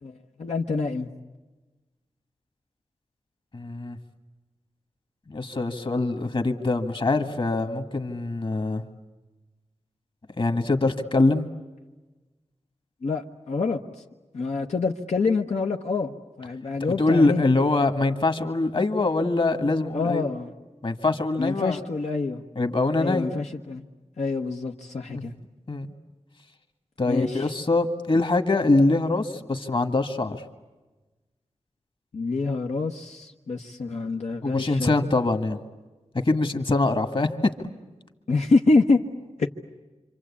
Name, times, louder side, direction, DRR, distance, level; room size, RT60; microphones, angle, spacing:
voice 1, 0.0-1.1 13.0-13.8 14.3-17.4 19.9-20.5 21.4-22.4 23.0-23.8 24.2-25.3 27.1-27.5 32.1-34.9 38.3-39.0 39.4-39.5, left 3 dB, 80° left, 1 dB, 1.1 m, -26 dB
voice 2, 3.5-4.0 5.3-8.8 10.4-11.5 17.0-20.2 20.8-21.8 22.6-23.3 25.1-25.2 25.7-25.9 27.0-30.4 34.4-35.6 36.2-37.3 37.6-37.7, left 2 dB, 45° left, 7 dB, 1.8 m, -23 dB
26.5 x 26.0 x 8.5 m, 1.2 s
wide cardioid pair, 80°, 12 cm